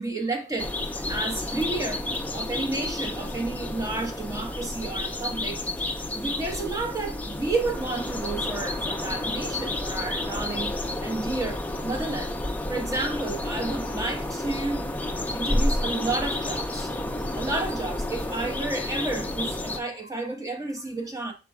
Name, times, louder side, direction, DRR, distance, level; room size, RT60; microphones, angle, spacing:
voice 1, 0.0-2.1 2.3-14.9 15.3-16.9 17.4-21.3, right 2 dB, 20° right, 0.8 m, -31 dB
sound 1, 0.6-19.8, left 1 dB, 10° left, 0.4 m, -30 dB
5.2 x 2.2 x 4.6 m
head